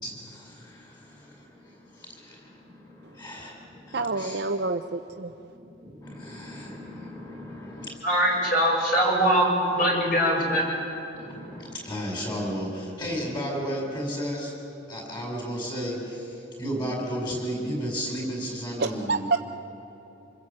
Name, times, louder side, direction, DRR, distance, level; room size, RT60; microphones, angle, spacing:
voice 1, 0.0-4.5 5.5-8.0 11.1-14.5 14.9-19.3, equal, 25° left, 0 dB, 5.8 m, -34 dB
voice 2, 3.9-5.3 18.8-19.4, right 3 dB, 55° right, 4 dB, 0.6 m, -27 dB
voice 3, 8.0-10.7, equal, 45° left, -2 dB, 7.2 m, -22 dB
26.5 x 21.0 x 8.5 m, 3.0 s
head